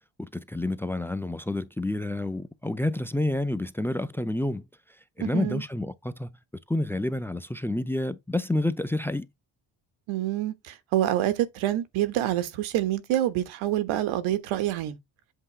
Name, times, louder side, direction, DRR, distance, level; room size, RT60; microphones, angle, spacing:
voice 1, 0.2-4.6 5.2-6.4 6.7-9.3, left 1 dB, 5° left, 0.6 m, -29 dB
voice 2, 5.2-5.6 10.1-15.0, right 13 dB, 90° right, 1.2 m, -27 dB
8.0 x 2.9 x 4.5 m
cardioid pair, 80°, 46 cm